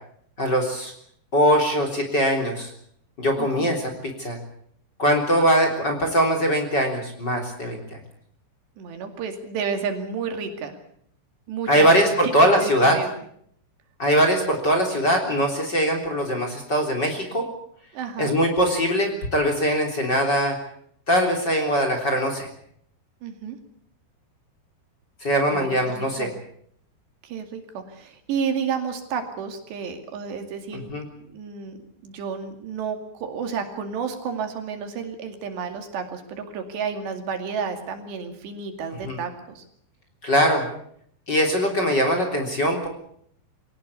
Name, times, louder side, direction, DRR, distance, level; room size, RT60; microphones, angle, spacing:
voice 1, 0.4-0.9 1.3-2.7 3.2-4.4 5.0-8.0 11.7-13.0 14.0-17.4 18.2-20.6 21.1-22.5 25.2-26.3 30.7-31.1 39.0-39.2 40.2-40.7 41.3-42.9, equal, 25° left, 3 dB, 3.7 m, -21 dB
voice 2, 3.4-3.7 5.3-5.4 8.8-10.8 11.5-12.0 12.2-13.1 17.9-18.4 23.2-23.6 25.5-26.3 27.2-30.9 31.3-31.8 32.0-39.6, right 6 dB, 70° right, 6 dB, 4.4 m, -31 dB
23.5 x 18.0 x 8.4 m, 0.68 s
omnidirectional pair, 5.1 m